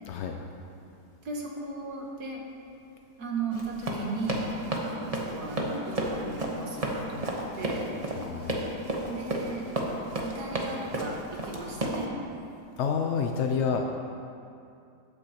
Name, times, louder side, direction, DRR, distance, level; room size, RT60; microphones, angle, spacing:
voice 1, 1.3-2.4 3.2-4.4 4.9-7.9 9.1-9.7 10.2-12.1, right 3 dB, 70° right, -1 dB, 1.8 m, -36 dB
Run, 3.5-12.0, right 1 dB, 25° right, 0.9 m, -31 dB
voice 2, 8.2-8.6 12.8-13.8, left 6 dB, 70° left, 3 dB, 0.6 m, -28 dB
14.5 x 8.8 x 2.9 m, 2.6 s
omnidirectional pair, 1.8 m